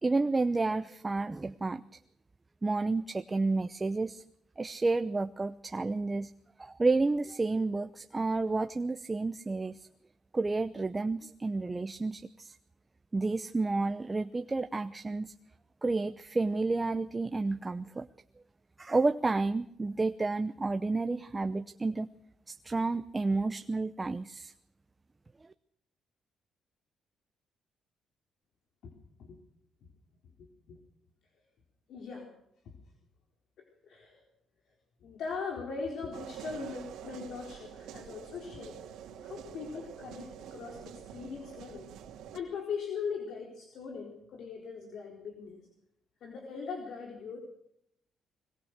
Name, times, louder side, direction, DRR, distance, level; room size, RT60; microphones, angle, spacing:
voice 1, 0.0-1.8 2.6-4.2 4.6-6.3 6.6-9.9 10.3-12.6 13.1-15.3 15.8-18.1 18.8-22.1 22.5-24.5, right 3 dB, 20° right, 10 dB, 0.8 m, -30 dB
voice 2, 28.8-29.4 30.4-30.8 31.9-32.3 33.8-34.2 35.0-41.9 42.3-45.6 46.2-47.4, left 5 dB, 70° left, 1 dB, 4.1 m, -40 dB
sound 1, 36.1-42.4, right 9 dB, 85° right, 2.7 m, -46 dB
22.0 x 20.0 x 6.6 m, 0.75 s
cardioid pair, 90°, 0 cm